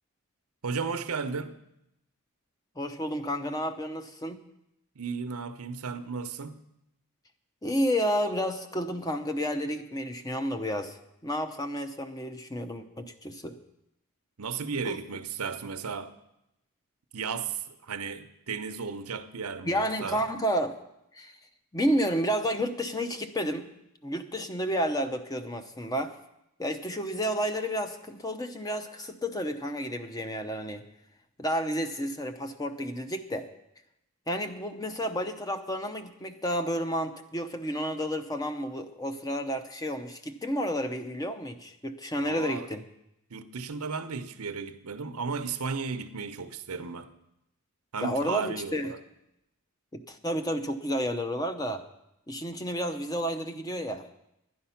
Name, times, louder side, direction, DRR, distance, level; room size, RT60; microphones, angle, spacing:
voice 1, 0.6-1.6 5.0-6.6 14.4-16.1 17.1-20.2 42.2-42.7 43.3-47.1 47.9-49.0, right 5 dB, 90° right, 0.8 m, -34 dB
voice 2, 2.8-4.4 7.6-13.6 14.8-15.0 19.6-20.8 21.1-21.3 21.7-23.7 24.0-26.2 26.6-30.8 31.4-33.5 34.3-42.8 48.0-48.9 49.9-51.8 52.3-54.0, equal, 15° left, 0.7 m, -31 dB
11.0 x 10.0 x 5.7 m
head